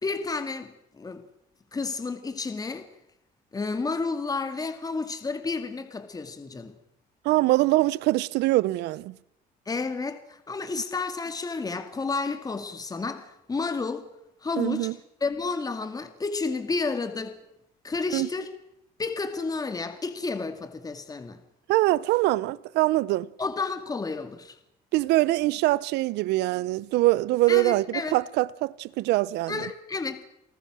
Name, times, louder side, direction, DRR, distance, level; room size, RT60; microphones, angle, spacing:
voice 1, 0.0-1.2 1.7-2.9 3.5-6.8 9.7-14.1 14.4-14.9 15.2-17.4 17.8-18.5 19.0-21.4 23.4-24.6 27.5-28.2 29.5-30.2, left 4 dB, 20° left, 2.1 m, -31 dB
voice 2, 7.2-9.1 14.6-14.9 18.1-18.3 21.7-23.3 24.9-29.7, right 18 dB, 85° right, 0.8 m, -23 dB
29.0 x 18.5 x 6.3 m
cardioid pair, 110°, 17 cm